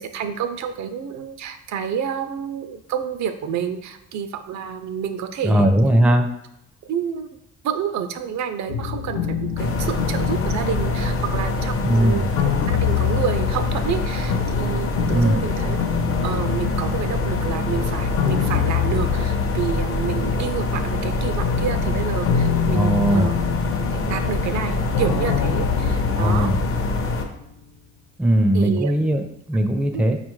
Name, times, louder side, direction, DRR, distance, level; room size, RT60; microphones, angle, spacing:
voice 1, 0.0-5.7 6.8-7.3 7.6-12.3 12.7-15.8 16.2-23.3 23.9-26.5 28.5-28.9 29.9-30.0, right 7 dB, 70° right, 8 dB, 0.5 m, -29 dB
voice 2, 5.4-6.3 11.8-12.3 15.1-15.4 22.7-23.3 26.2-26.6 28.2-30.2, right 1 dB, 5° right, 4 dB, 0.4 m, -19 dB
sound 1, 8.7-20.7 21.1-27.5, left 9 dB, 85° left, 0.5 m, -27 dB
sound 2, 9.6-27.3, left 2 dB, 45° left, 0.6 m, -25 dB
4.8 x 2.4 x 3.1 m, 0.79 s
cardioid pair, 90°, 30 cm